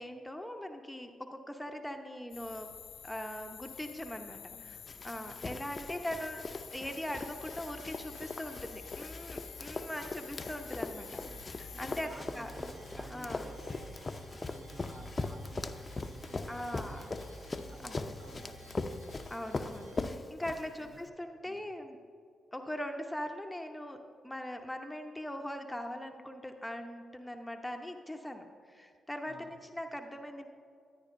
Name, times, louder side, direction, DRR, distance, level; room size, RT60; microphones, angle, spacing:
voice 1, 0.0-2.7 3.0-4.4 4.6-4.8 5.0-6.4 6.7-11.2 11.6-12.5 13.1-13.5 16.5-17.1 17.8-18.1 19.3-22.0 22.5-24.0 24.2-30.5, left 1 dB, 10° left, 4 dB, 0.8 m, -41 dB
sound 1, 2.3-12.1, left 9 dB, 75° left, 0.6 m, -49 dB
voice 2, 4.3-4.8 5.2-6.3 11.2-14.0 14.3-17.3 17.7-19.2 20.8-21.0 21.4-21.7 29.3-29.5, right 1 dB, 45° right, 2 dB, 1.4 m, -54 dB
Run, 4.9-21.0, left 3 dB, 40° left, 0.6 m, -41 dB
sound 2, 6.4-20.1, right 1 dB, 85° right, 0.8 m, -53 dB
13.5 x 9.8 x 2.6 m, 2.3 s
hypercardioid pair, 40°, 0 cm